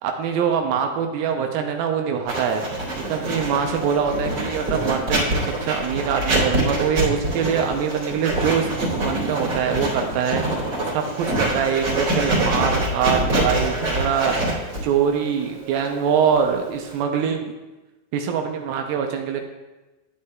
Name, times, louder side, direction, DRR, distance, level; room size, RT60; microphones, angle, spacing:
voice 1, 0.0-2.6 3.1-10.6 10.9-14.3 14.8-17.5 18.1-19.4, right 7 dB, 85° right, 4 dB, 2.5 m, -23 dB
Writing, 2.3-17.0, right 1 dB, 40° right, 3.3 m, -25 dB
11.0 x 8.5 x 2.3 m, 1.1 s
omnidirectional pair, 4.1 m